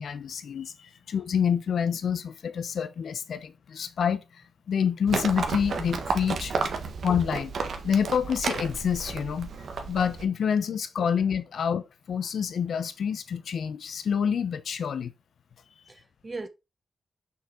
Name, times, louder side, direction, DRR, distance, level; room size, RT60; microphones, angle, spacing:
voice 1, 0.0-4.2 4.7-6.5 7.0-7.5 7.8-9.5 9.9-15.1, left 7 dB, 85° left, 0.9 m, -27 dB
Livestock farm animals working animals, 5.1-10.2, right 4 dB, 80° right, 1.5 m, -32 dB
voice 2, 6.5-6.9 15.9-16.5, right 3 dB, 35° right, 1.2 m, -40 dB
6.6 x 5.8 x 4.5 m
cardioid pair, 70°, 0 cm